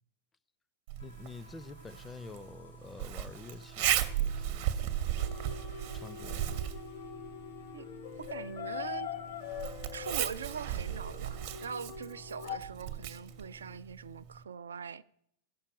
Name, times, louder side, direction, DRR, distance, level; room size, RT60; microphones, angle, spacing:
Zipper (clothing), 0.9-14.4, right 11 dB, 50° right, 0.7 m, -37 dB
sound 1, 1.0-13.8, left 5 dB, 80° left, 2.6 m, -54 dB
voice 1, 1.0-4.7 5.9-6.7, left 3 dB, 15° left, 0.5 m, -48 dB
sound 2, 5.2-12.6, left 8 dB, 55° left, 0.8 m, -43 dB
voice 2, 8.1-9.1 9.9-15.0, right 6 dB, 70° right, 0.3 m, -42 dB
15.5 x 5.7 x 4.9 m
figure-of-eight pair, 90°, 0 cm